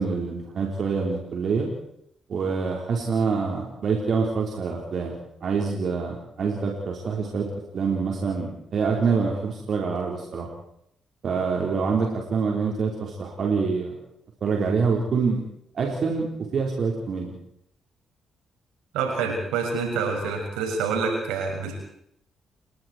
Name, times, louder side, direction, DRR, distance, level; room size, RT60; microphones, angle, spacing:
voice 1, 0.0-1.7 2.3-5.1 5.4-10.5 11.2-13.9 14.4-15.4 15.7-17.3, right 5 dB, 55° right, 0 dB, 4.8 m, -26 dB
voice 2, 18.9-21.8, right 4 dB, 75° right, 2 dB, 6.9 m, -27 dB
29.0 x 23.0 x 4.8 m, 0.73 s
hypercardioid pair, 40°, 0 cm